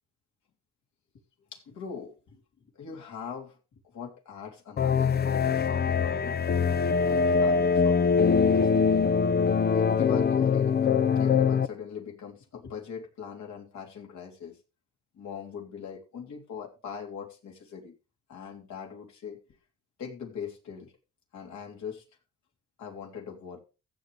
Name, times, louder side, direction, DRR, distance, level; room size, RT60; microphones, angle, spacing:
voice 1, 1.5-2.4 2.7-3.6 3.8-6.4 7.0-9.1 9.7-10.8 11.2-14.6 15.1-17.9 18.3-19.4 20.0-20.9 21.3-22.0 22.8-23.6, left 7 dB, 70° left, 3.4 m, -41 dB
sound 1, 4.8-11.7, left 6 dB, 35° left, 0.6 m, -23 dB
15.5 x 8.0 x 3.4 m
cardioid pair, 90°, 30 cm